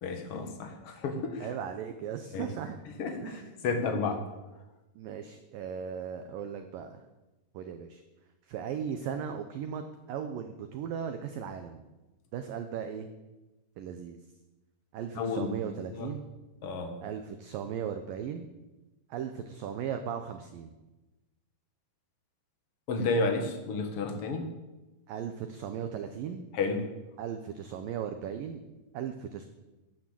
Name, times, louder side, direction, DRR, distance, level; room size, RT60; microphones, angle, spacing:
voice 1, 0.0-1.5 2.3-2.5 3.0-4.2 15.2-15.5 15.9-16.1 16.6-16.9 22.9-24.5 26.5-26.8, left 3 dB, 65° left, 5 dB, 1.4 m, -31 dB
voice 2, 1.4-2.8 3.2-3.5 5.0-7.0 7.5-8.0 8.5-11.8 12.3-13.1 13.8-14.2 14.9-16.3 17.0-18.5 19.1-20.7 25.1-26.5 27.2-28.6 28.9-29.5, right 8 dB, 80° right, 7 dB, 2.0 m, -37 dB
15.0 x 10.5 x 7.5 m, 1.1 s
omnidirectional pair, 5.2 m